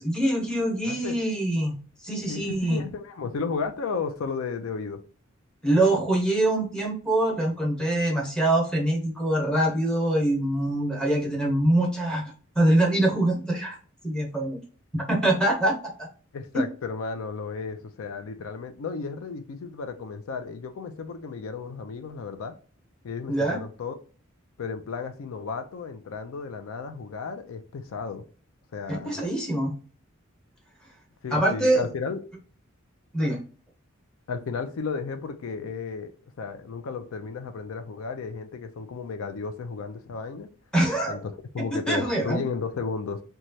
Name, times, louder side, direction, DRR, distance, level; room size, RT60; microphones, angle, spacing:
voice 1, 0.0-1.7 2.0-2.8 5.6-13.8 14.0-14.6 14.9-16.1 23.3-23.6 28.9-29.7 31.3-31.9 33.1-33.4 40.7-41.2 41.6-42.4, right 1 dB, 5° left, 0.9 m, -24 dB
voice 2, 2.3-5.0 16.3-22.5 23.0-23.9 24.6-28.2 28.7-29.2 31.2-32.2 34.3-40.5 41.1-43.2, left 5 dB, 80° left, 0.4 m, -33 dB
3.1 x 2.3 x 2.6 m
head